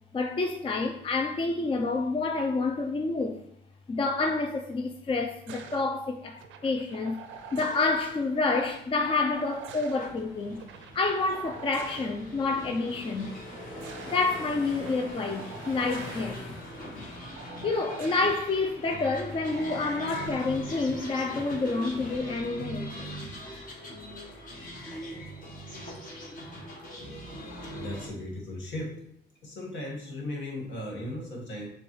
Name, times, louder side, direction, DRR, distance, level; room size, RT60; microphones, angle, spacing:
voice 1, 0.1-3.4 3.9-7.2 7.5-10.6 10.9-13.3 14.1-16.4 17.6-22.9, left 3 dB, 25° left, 0.4 m, -28 dB
sound 1, 5.5-5.8 6.4-7.9 9.0-10.0 10.6-12.1 13.4-14.2 14.7-16.3 17.4-18.4 18.9-20.5 21.8-22.2, right 7 dB, 80° right, 0.5 m, -45 dB
sound 2, 7.3-22.2, left 2 dB, 85° left, 1.3 m, -47 dB
sound 3, 10.0-28.1, equal, 45° left, 1.3 m, -42 dB
voice 2, 27.7-29.0 29.4-31.7, left 1 dB, 70° left, 1.7 m, -36 dB
6.9 x 2.3 x 3.1 m
cardioid pair, 90°, 20 cm